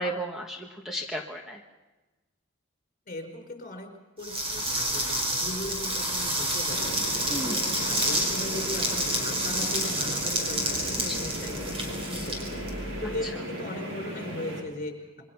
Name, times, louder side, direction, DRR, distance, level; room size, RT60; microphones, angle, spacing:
voice 1, 0.0-1.6 7.3-7.6 11.1-11.2, right 1 dB, ahead, 1 dB, 1.4 m, -34 dB
voice 2, 3.1-3.9 4.2-7.0 7.2-12.6 13.0-15.2, left 1 dB, 40° left, 5 dB, 4.9 m, -38 dB
sound 1, 4.2-13.2, right 1 dB, 25° right, 4.9 m, -29 dB
sound 2, 6.7-14.6, equal, 65° right, 5.0 m, -37 dB
27.5 x 23.0 x 5.9 m, 1.2 s
head